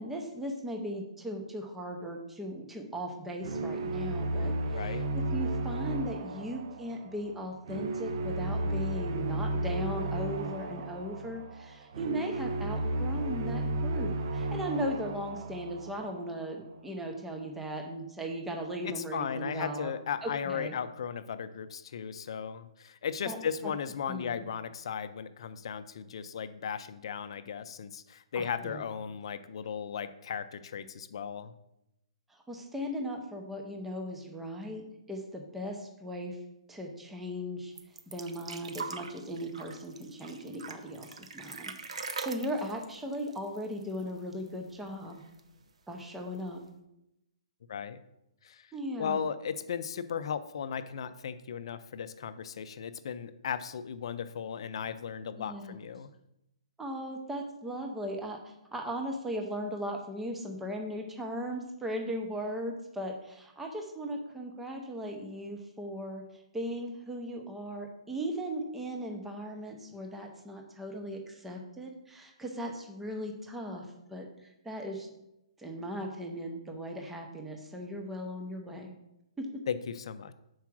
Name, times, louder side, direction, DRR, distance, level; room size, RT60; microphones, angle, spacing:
voice 1, 0.0-5.0 5.3-19.9 20.2-20.7 23.2-23.4 23.6-23.7 24.1-24.4 28.4-28.8 32.5-34.8 35.1-36.4 36.7-37.7 38.1-45.2 45.9-46.6 48.7-49.3 55.4-55.8 56.8-58.4 58.7-66.2 66.5-75.1 75.6-78.9 79.4-79.6, equal, 5° right, 2 dB, 0.6 m, -38 dB
sound 1, 3.4-16.5, right 1 dB, 50° right, 0.6 m, -33 dB
voice 2, 4.7-5.1 18.9-31.5 47.7-48.0 48.4-48.7 49.0-56.1 79.7-80.3, left 7 dB, 55° left, 12 dB, 0.5 m, -36 dB
sound 2, 37.8-44.2 44.5-44.6 44.9-45.6 46.4-46.5, right 4 dB, 85° right, 0.8 m, -42 dB
5.9 x 4.7 x 6.0 m, 0.86 s
hypercardioid pair, 170°, 3 cm